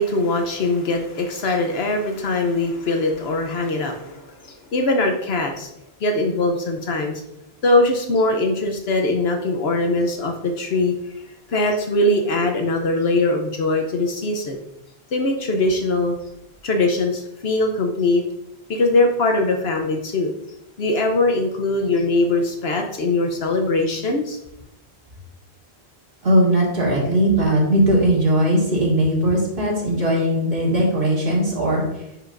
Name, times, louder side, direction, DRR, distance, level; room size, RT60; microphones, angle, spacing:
voice 1, 0.0-5.7 6.0-7.1 7.6-11.1 11.5-14.6 15.1-16.2 16.6-18.2 18.7-20.3 20.8-24.4, left 2 dB, 75° left, 3 dB, 1.0 m, -21 dB
voice 2, 26.2-31.8, right 1 dB, 55° right, -3 dB, 2.1 m, -19 dB
10.5 x 4.9 x 2.5 m, 0.85 s
omnidirectional pair, 1.1 m